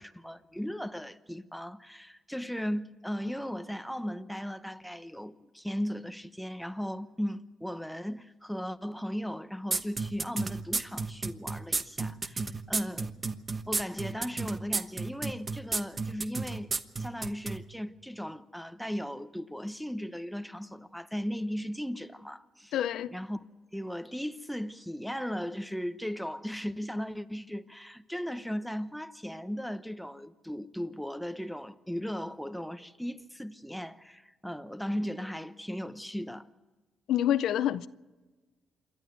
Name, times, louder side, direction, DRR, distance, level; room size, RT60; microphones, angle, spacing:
voice 1, 0.0-13.1 13.7-16.7 17.0-22.7 23.1-23.4 23.7-36.5, equal, ahead, 0.9 m, -37 dB
sound 1, 9.7-17.6, right 4 dB, 30° right, 1.1 m, -31 dB
voice 2, 22.7-23.2 37.1-37.9, left 11 dB, 75° left, 0.6 m, -27 dB
27.5 x 11.5 x 9.3 m
cardioid pair, 90°, 0 cm